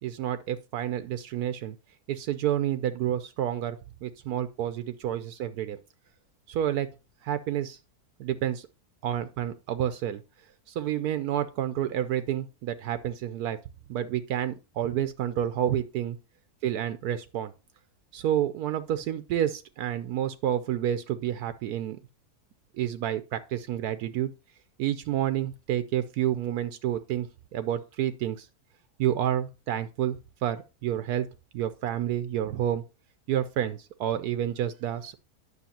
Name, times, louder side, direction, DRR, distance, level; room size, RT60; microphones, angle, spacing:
voice 1, 0.0-1.7 2.1-5.8 6.5-6.9 7.2-7.8 8.2-8.7 9.0-10.2 10.7-13.6 13.9-16.2 16.6-17.5 18.1-22.0 22.7-24.3 24.8-28.5 29.0-30.2 30.4-31.3 31.5-32.8 33.3-35.1, right 11 dB, 80° right, 1.1 m, -29 dB
9.5 x 6.4 x 2.8 m
omnidirectional pair, 1.7 m